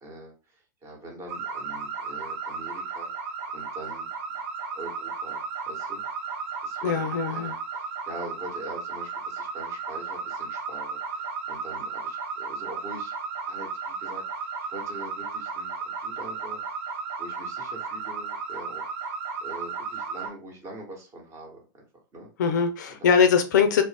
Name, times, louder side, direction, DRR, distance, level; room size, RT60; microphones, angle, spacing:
voice 1, 0.0-4.1 4.7-6.4 6.6-13.1 13.5-19.1 19.4-21.6 22.1-22.3 22.9-23.1, right 1 dB, 25° right, 1 dB, 1.1 m, -43 dB
sound 1, 1.3-20.3, right 5 dB, 45° right, 0.7 m, -34 dB
voice 2, 6.8-7.5 22.4-23.8, left 6 dB, 55° left, 8 dB, 0.5 m, -21 dB
2.4 x 2.0 x 3.3 m, 0.32 s
figure-of-eight pair, 100°, 11 cm